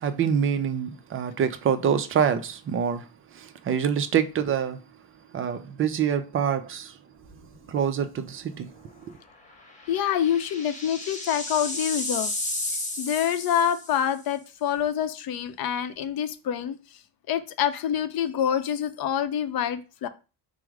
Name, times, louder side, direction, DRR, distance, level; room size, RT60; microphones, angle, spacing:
voice 1, 0.0-3.1 3.3-4.8 5.3-6.9 7.7-8.7, right 8 dB, 35° right, 0.4 m, -26 dB
sound 1, 7.3-7.6 8.0-8.1 9.5-14.2, left 2 dB, 15° left, 1.1 m, -33 dB
voice 2, 9.9-12.3 13.0-16.8 17.3-20.1, left 9 dB, 60° left, 0.6 m, -26 dB
4.8 x 2.0 x 4.5 m
cardioid pair, 130°, 41 cm